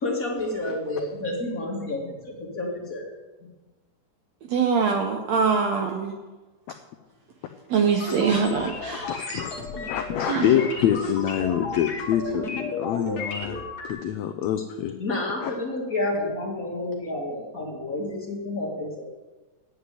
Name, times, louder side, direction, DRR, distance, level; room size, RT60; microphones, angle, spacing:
voice 1, 0.0-3.1 15.0-19.1, left 2 dB, 30° left, -2 dB, 1.9 m, -30 dB
voice 2, 4.5-6.1 7.7-9.5 10.2-10.6, right 5 dB, 70° right, 4 dB, 1.7 m, -24 dB
sound 1, 8.0-13.9, left 3 dB, 65° left, 0.9 m, -33 dB
voice 3, 8.9-14.9 15.4-15.5, left 10 dB, 85° left, 6 dB, 1.5 m, -26 dB
9.7 x 7.9 x 8.4 m, 1.2 s
omnidirectional pair, 3.9 m